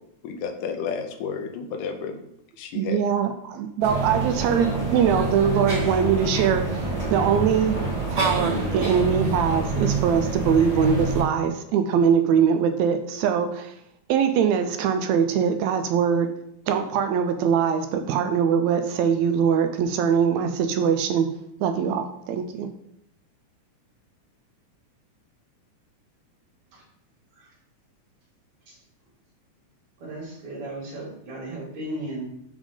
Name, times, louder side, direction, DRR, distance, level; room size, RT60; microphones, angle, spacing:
voice 1, 0.2-2.2 2.6-3.0, left 6 dB, 85° left, 5 dB, 2.4 m, -31 dB
voice 2, 2.7-7.8 8.1-13.7 14.1-16.3 16.7-21.3 21.6-22.7, right 7 dB, 80° right, 7 dB, 1.7 m, -22 dB
sound 1, 3.8-11.2, right 3 dB, 35° right, 0.5 m, -27 dB
voice 3, 30.0-32.3, right 1 dB, 65° right, -6 dB, 3.6 m, -35 dB
7.3 x 3.6 x 5.1 m, 0.75 s
omnidirectional pair, 3.7 m